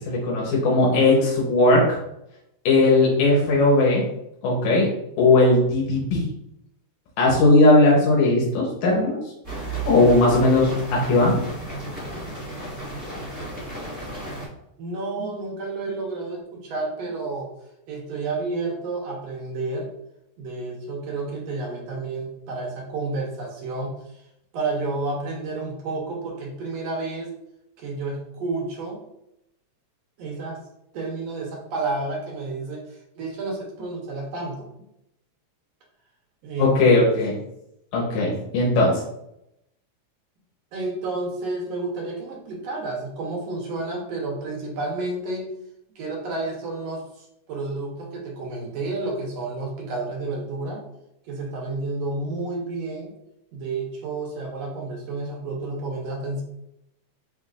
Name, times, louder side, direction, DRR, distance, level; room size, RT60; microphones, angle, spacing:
voice 1, 0.0-2.0 2.7-4.0 4.4-4.9 5.2-6.3 7.2-9.2 9.8-11.4 36.6-37.3 37.9-39.0, left 2 dB, 80° left, -4 dB, 2.4 m, -18 dB
sound 1, 9.4-14.5, right 2 dB, 15° right, 0.6 m, -33 dB
voice 2, 14.8-17.5 17.9-19.9 20.4-23.9 24.5-27.3 27.8-29.0 30.2-30.6 30.9-32.8 33.2-34.7 36.4-37.0 40.7-45.5 46.0-47.0 47.5-50.8 51.3-53.2 53.5-56.4, right 3 dB, 70° right, -1 dB, 1.9 m, -30 dB
5.8 x 3.3 x 2.4 m, 0.82 s
omnidirectional pair, 3.3 m